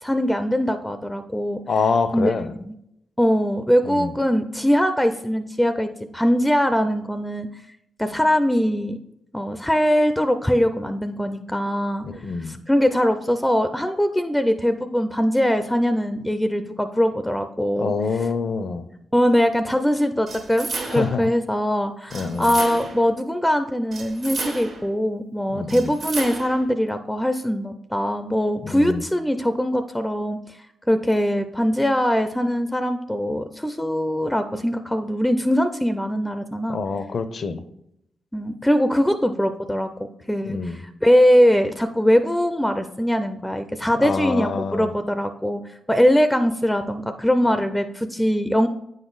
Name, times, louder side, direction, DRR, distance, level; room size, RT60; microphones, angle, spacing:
voice 1, 0.0-1.6 2.1-2.3 2.7-2.8 3.2-7.5 8.0-9.0 9.3-12.0 12.4-17.9 19.1-30.6 30.9-36.8 38.3-39.9 40.3-45.6 45.9-48.7, equal, 5° left, 0.4 m, -21 dB
voice 2, 1.7-2.5 3.8-4.1 12.0-12.5 17.8-18.8 20.9-21.3 22.1-22.6 25.5-25.9 28.6-29.0 36.7-37.6 40.4-40.8 44.0-44.9, left 4 dB, 60° left, 0.5 m, -26 dB
sound 1, 20.3-21.2 22.1-23.1 23.9-24.9 25.7-26.7, right 3 dB, 65° right, 1.3 m, -32 dB
8.9 x 4.0 x 3.9 m
supercardioid pair, 55°, 0 cm